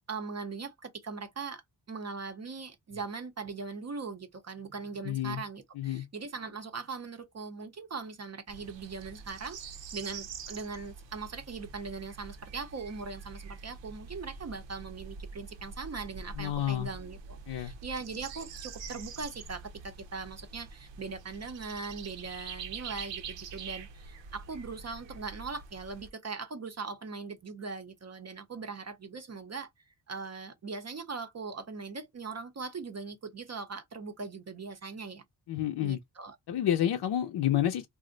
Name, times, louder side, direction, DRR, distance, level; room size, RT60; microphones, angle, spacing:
voice 1, 0.1-1.6 1.9-9.6 9.9-29.7 30.1-35.2 35.8-36.4, right 4 dB, 35° right, 0.6 m, -40 dB
voice 2, 5.0-5.4 5.8-6.1 16.4-16.9 17.5-17.7 35.5-36.0 36.5-37.9, left 11 dB, 65° left, 0.6 m, -29 dB
sound 1, 8.5-26.1, right 5 dB, 75° right, 0.7 m, -45 dB
2.5 x 2.0 x 3.7 m
wide cardioid pair, 110°, 44 cm